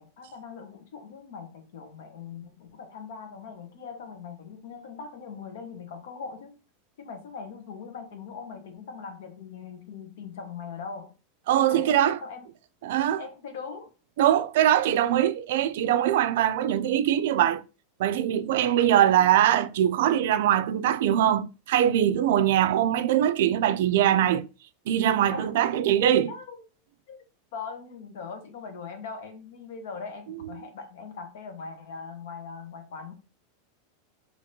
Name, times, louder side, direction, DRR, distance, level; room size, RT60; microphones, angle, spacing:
voice 1, 0.0-6.6 7.0-11.1 11.7-12.5 13.2-13.9 25.3-25.5 26.3-26.6 27.1-27.2 27.5-33.1, left 5 dB, 75° left, 1.1 m, -40 dB
voice 2, 11.5-12.2 12.8-13.2 14.2-17.6 18.0-24.5 24.9-26.3 30.4-30.5, right 11 dB, 70° right, 0.4 m, -22 dB
5.1 x 3.0 x 2.7 m
supercardioid pair, 150°, 0 cm